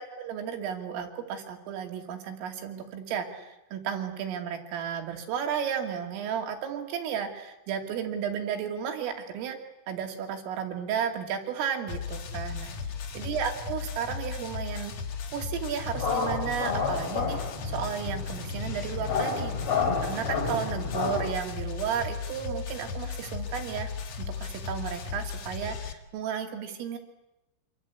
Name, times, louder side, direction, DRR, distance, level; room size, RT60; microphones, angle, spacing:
voice 1, 0.0-9.6 9.9-12.7 13.2-14.9 15.3-17.4 17.6-19.6 20.0-23.9 24.2-27.0, right 8 dB, 75° right, 4 dB, 5.2 m, -33 dB
sound 1, 11.9-25.9, left 6 dB, 55° left, 1.9 m, -36 dB
sound 2, 15.9-21.3, left 5 dB, 30° left, 3.5 m, -31 dB
26.5 x 26.5 x 8.4 m, 0.93 s
omnidirectional pair, 5.9 m